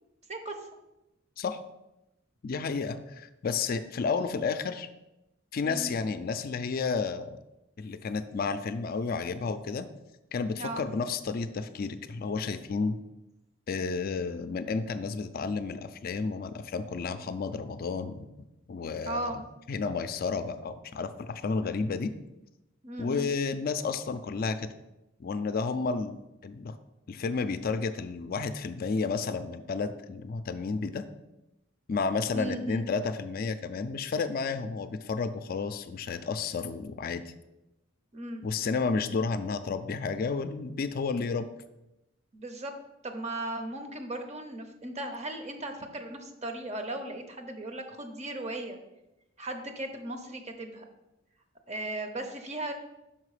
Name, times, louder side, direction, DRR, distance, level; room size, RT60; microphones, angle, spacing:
voice 1, 2.4-4.9 5.5-7.4 7.8-9.9 10.3-13.0 13.7-18.3 18.7-19.4 19.7-22.1 23.0-24.7 25.2-26.8 27.1-31.0 31.9-37.2 38.4-41.5, left 4 dB, 50° left, 10 dB, 0.4 m, -31 dB
voice 2, 18.9-19.4 22.8-23.3 32.3-32.8 38.1-38.4 42.3-42.7 43.0-48.8 49.4-50.9 51.7-52.7, right 1 dB, 35° right, 6 dB, 0.7 m, -37 dB
5.9 x 4.8 x 4.8 m, 0.93 s
head